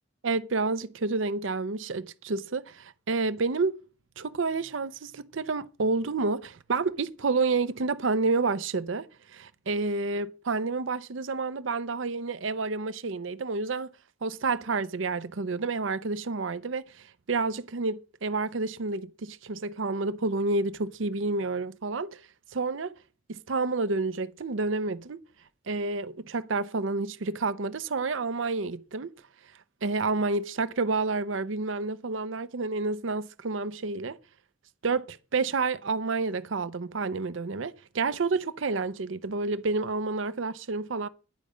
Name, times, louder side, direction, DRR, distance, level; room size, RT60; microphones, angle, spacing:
voice 1, 0.2-3.8 4.2-9.1 9.3-13.9 14.2-22.2 22.5-22.9 23.3-25.2 25.7-29.1 29.8-34.2 34.8-41.1, right 3 dB, 75° right, 0.7 m, -29 dB
11.5 x 5.1 x 8.4 m
head